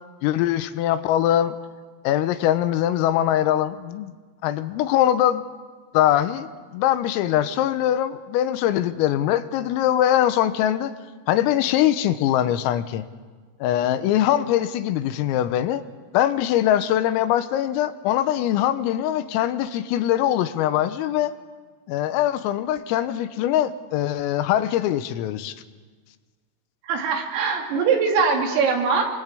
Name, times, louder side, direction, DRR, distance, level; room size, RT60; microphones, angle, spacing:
voice 1, 0.2-1.6 2.1-4.1 4.4-5.5 5.9-10.9 11.3-13.1 13.6-15.8 16.1-21.3 21.9-25.6, left 12 dB, 85° left, 11 dB, 3.7 m, -22 dB
voice 2, 26.9-29.1, right 5 dB, 80° right, 1 dB, 5.8 m, -21 dB
27.0 x 24.0 x 8.4 m, 1.4 s
omnidirectional pair, 5.9 m